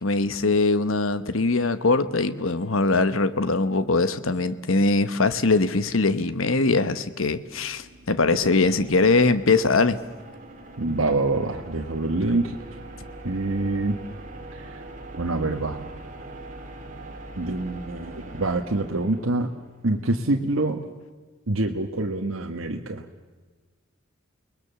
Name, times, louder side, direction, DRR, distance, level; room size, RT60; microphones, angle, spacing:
voice 1, 0.0-10.0, left 3 dB, 85° left, 12 dB, 1.1 m, -22 dB
sound 1, 7.1-19.9, right 2 dB, 40° right, 2.7 m, -42 dB
voice 2, 10.8-12.6 13.2-14.0 14.6-14.8 15.2-15.8 17.4-19.5 19.8-20.8 21.5-23.0, right 2 dB, 85° right, 2 dB, 1.4 m, -25 dB
29.5 x 20.0 x 7.0 m, 1.3 s
head